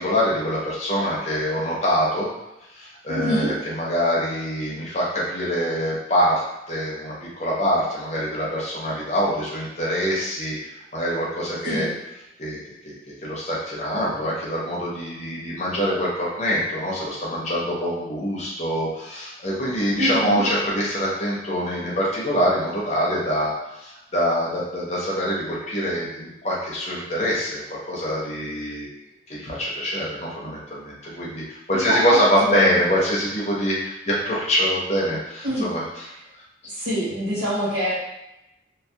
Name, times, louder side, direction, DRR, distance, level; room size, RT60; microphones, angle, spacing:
voice 1, 0.0-2.3 2.7-6.4 6.7-11.9 12.4-12.6 12.8-28.9 29.3-35.8, equal, 35° left, -5 dB, 0.6 m, -24 dB
voice 2, 3.1-3.6 11.6-11.9 20.0-20.5 31.7-32.8 35.4-35.7 36.6-37.9, equal, 70° right, -11 dB, 0.7 m, -25 dB
2.2 x 2.1 x 2.7 m, 0.90 s
head